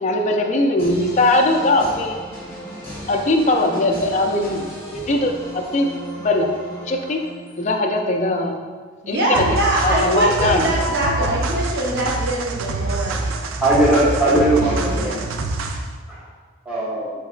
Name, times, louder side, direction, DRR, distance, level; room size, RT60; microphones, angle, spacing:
voice 1, 0.0-2.2 3.1-5.9 6.2-6.5 6.9-7.2 7.6-8.6 9.1-9.4 9.8-10.7, left 2 dB, 35° left, 3 dB, 0.3 m, -20 dB
sound 1, 0.8-7.7, equal, 15° left, 1.1 m, -36 dB
voice 2, 9.0-13.4 14.3-15.1, right 1 dB, 50° right, -3 dB, 0.8 m, -23 dB
sound 2, 9.3-16.0, right 3 dB, 80° right, 0.4 m, -26 dB
voice 3, 13.6-15.3 16.1-16.2 16.6-17.1, right 1 dB, 5° right, -9 dB, 1.2 m, -19 dB
4.9 x 3.9 x 2.4 m, 1.5 s
head